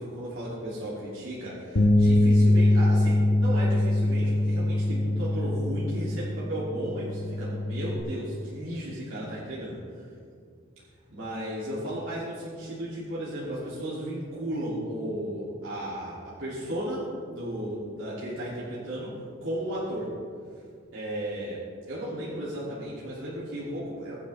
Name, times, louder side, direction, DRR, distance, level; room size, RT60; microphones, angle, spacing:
voice 1, 0.0-9.8 11.1-19.1 19.4-20.1 20.9-21.6 21.9-24.2, right 1 dB, 65° right, -9 dB, 2.8 m, -34 dB
Bass guitar, 1.8-8.0, left 1 dB, 60° left, 1.2 m, -23 dB
21.5 x 8.3 x 3.5 m, 2.3 s
head